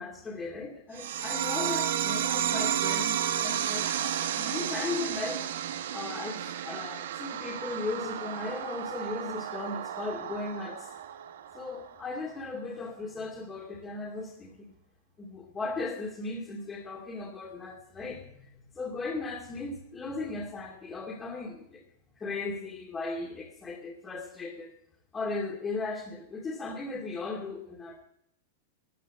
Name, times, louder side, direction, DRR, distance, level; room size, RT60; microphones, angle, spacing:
voice 1, 0.0-5.4 5.9-10.9 11.5-14.7 15.2-18.5 18.7-21.8 22.2-24.7 25.1-28.0, left 3 dB, 20° left, 0 dB, 2.3 m, -37 dB
sound 1, 0.9-12.0, right 10 dB, 80° right, 1.1 m, -32 dB
13.5 x 9.2 x 7.5 m, 0.75 s
hypercardioid pair, 125°, 0 cm